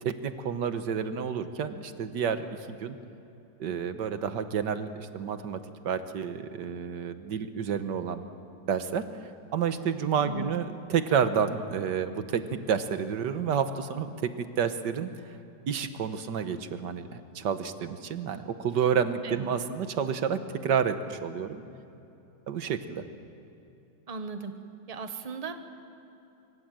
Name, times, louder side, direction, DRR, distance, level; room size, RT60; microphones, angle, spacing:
voice 1, 0.0-3.0 3.6-8.3 8.7-9.0 9.5-15.1 15.7-21.6 22.5-23.0, right 7 dB, 85° right, 10 dB, 1.7 m, -30 dB
voice 2, 10.2-10.5 19.2-19.5 24.1-24.6 24.9-25.5, right 3 dB, 25° right, 8 dB, 1.2 m, -37 dB
24.5 x 24.5 x 7.7 m, 2.8 s
omnidirectional pair, 1.8 m